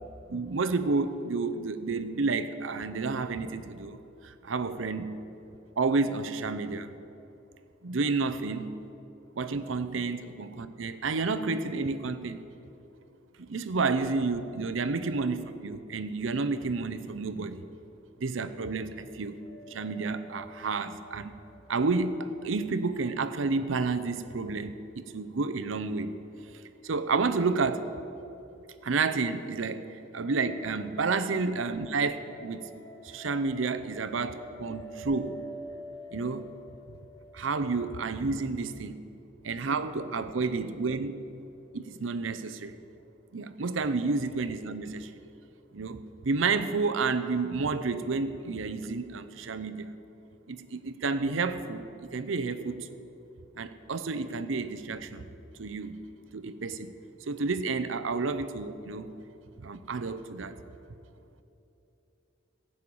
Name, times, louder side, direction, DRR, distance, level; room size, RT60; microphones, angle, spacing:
voice 1, 0.3-5.2 5.8-6.9 7.8-8.7 9.4-12.4 13.4-17.7 18.2-19.4 19.7-21.3 21.7-24.8 25.1-26.1 26.8-27.9 28.8-29.9 30.1-32.7 33.0-35.4 36.1-36.5 37.3-39.0 39.4-41.1 41.7-42.8 43.3-45.1 45.7-49.9 50.5-53.0 53.6-55.3 55.6-56.0 56.3-57.0 57.3-59.2 59.6-60.6, right 4 dB, 80° right, 12 dB, 0.7 m, -30 dB
sound 1, 19.4-22.6 22.8-22.9 30.1-38.1, right 1 dB, 75° left, 1.3 m, -48 dB
16.0 x 5.6 x 8.5 m, 3.0 s
head